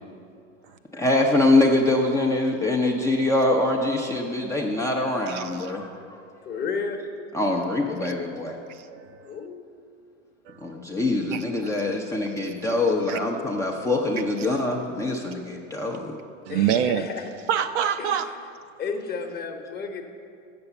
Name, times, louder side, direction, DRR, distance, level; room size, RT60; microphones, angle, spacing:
voice 1, 0.9-6.2 7.3-8.6 10.6-16.2, left 2 dB, 10° left, -1 dB, 0.5 m, -24 dB
voice 2, 5.3-5.7 8.7-9.4 10.5-10.7 11.3-11.4 12.4-12.5 13.1-13.2 16.5-17.1 17.5-18.3, right 9 dB, 70° right, 9 dB, 0.7 m, -26 dB
voice 3, 6.4-7.0 9.2-9.6 16.5-17.3 18.0-18.2 18.8-20.0, left 5 dB, 25° left, 4 dB, 0.9 m, -32 dB
7.8 x 6.9 x 7.0 m, 2.3 s
hypercardioid pair, 115°, 38 cm